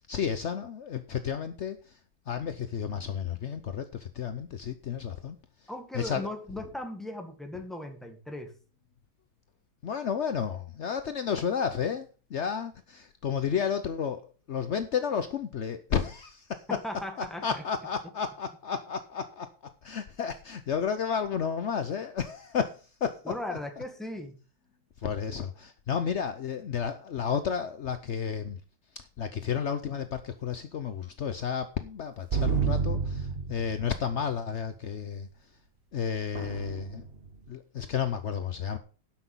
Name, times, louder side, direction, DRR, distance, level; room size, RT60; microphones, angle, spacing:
voice 1, 0.1-1.9 2.3-5.4 5.9-6.3 9.8-14.2 14.5-16.6 17.2-19.5 19.8-23.6 25.0-28.6 29.2-35.3 35.9-37.0 37.5-38.8, left 7 dB, 75° left, 0.6 m, -32 dB
voice 2, 5.7-8.5 16.7-17.6 23.2-24.4, left 1 dB, ahead, 1.6 m, -38 dB
sound 1, 32.3-34.1 36.3-37.3, right 5 dB, 40° right, 0.9 m, -29 dB
12.0 x 6.2 x 5.5 m
omnidirectional pair, 2.2 m